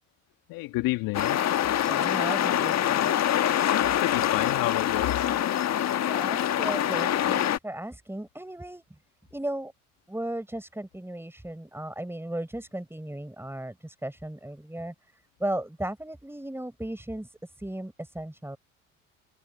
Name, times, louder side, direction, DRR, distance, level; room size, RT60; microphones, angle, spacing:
voice 1, 0.5-1.4 3.7-5.3, left 20 dB, 65° left, 2.0 m, -30 dB
sound 1, 1.1-7.6, left 11 dB, 45° left, 1.5 m, -25 dB
voice 2, 1.9-3.2 6.1-8.8 9.3-9.7 10.1-14.9 15.4-18.6, right 1 dB, 5° right, 5.9 m, -36 dB
hypercardioid pair, 60°, 37 cm